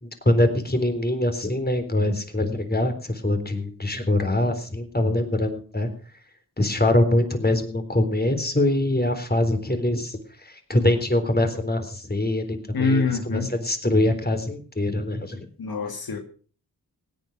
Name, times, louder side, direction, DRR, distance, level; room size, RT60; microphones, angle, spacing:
voice 1, 0.0-5.9 6.6-15.5, left 1 dB, 25° left, 7 dB, 3.8 m, -23 dB
voice 2, 12.7-13.5 15.6-16.2, left 4 dB, 85° left, 5 dB, 2.1 m, -24 dB
17.0 x 10.0 x 6.1 m, 0.40 s
cardioid pair, 45°, 36 cm